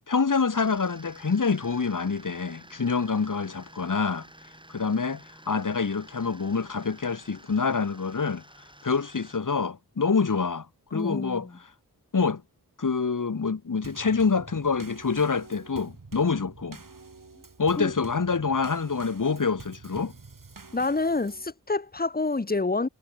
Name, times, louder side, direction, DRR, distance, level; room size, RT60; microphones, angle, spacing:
voice 1, 0.1-4.3 4.7-8.4 8.8-10.7 10.9-11.5 12.1-12.4 12.8-16.8 17.6-20.1, left 5 dB, 60° left, 1.5 m, -26 dB
sound 1, 0.5-9.4, right 1 dB, 15° right, 6.7 m, -51 dB
voice 2, 10.9-11.6 17.8-17.9 20.7-22.9, left 3 dB, 25° left, 1.1 m, -27 dB
Drum kit / Snare drum / Bass drum, 13.8-21.5, right 3 dB, 60° right, 5.0 m, -47 dB
wide cardioid pair, 75°, 36 cm